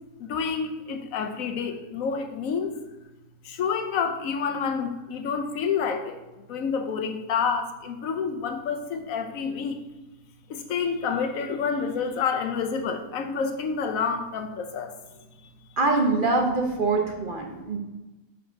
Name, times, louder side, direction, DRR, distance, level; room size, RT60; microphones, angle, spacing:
voice 1, 0.2-2.8 3.4-6.2 6.5-9.8 10.5-15.0 15.4-15.5, left 6 dB, 90° left, 6 dB, 1.2 m, -28 dB
voice 2, 15.8-17.8, right 3 dB, 45° right, 2 dB, 1.0 m, -24 dB
5.9 x 4.4 x 5.2 m, 1.1 s
omnidirectional pair, 1.4 m